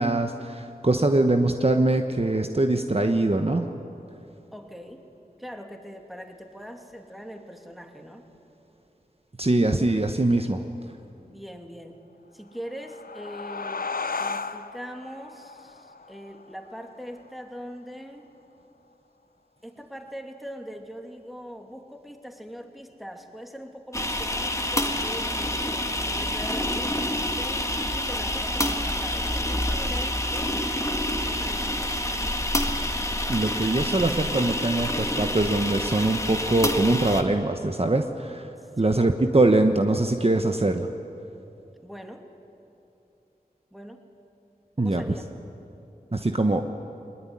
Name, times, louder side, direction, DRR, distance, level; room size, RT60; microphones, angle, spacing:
voice 1, 0.0-3.7 9.4-10.6 33.3-40.9 44.8-45.0 46.1-46.7, right 2 dB, 40° right, 5 dB, 1.1 m, -23 dB
voice 2, 4.5-5.0 5.4-8.2 11.3-12.0 12.3-13.9 14.2-18.3 19.6-30.6 31.1-32.1 38.6-39.0 41.8-42.3 43.7-44.0 44.8-45.3, equal, ahead, 3 dB, 2.6 m, -41 dB
sound 1, 12.5-17.7, left 4 dB, 65° left, 0.7 m, -35 dB
sound 2, 23.9-37.2, left 1 dB, 20° left, 1.9 m, -27 dB
20.5 x 20.5 x 9.9 m, 2.9 s
wide cardioid pair, 40°, 16 cm